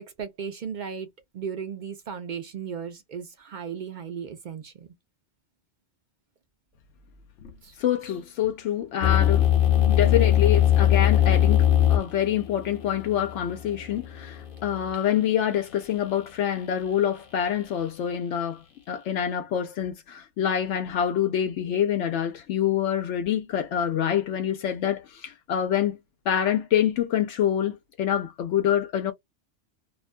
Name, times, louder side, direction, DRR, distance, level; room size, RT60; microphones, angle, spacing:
voice 1, 0.0-4.9 7.6-7.7, right 7 dB, 60° right, 0.5 m, -36 dB
voice 2, 7.8-9.5 10.0-26.0 26.3-29.1, left 10 dB, 85° left, 0.9 m, -26 dB
sound 1, 9.0-14.9, left 11 dB, 50° left, 0.8 m, -21 dB
2.4 x 2.2 x 2.4 m
omnidirectional pair, 1.2 m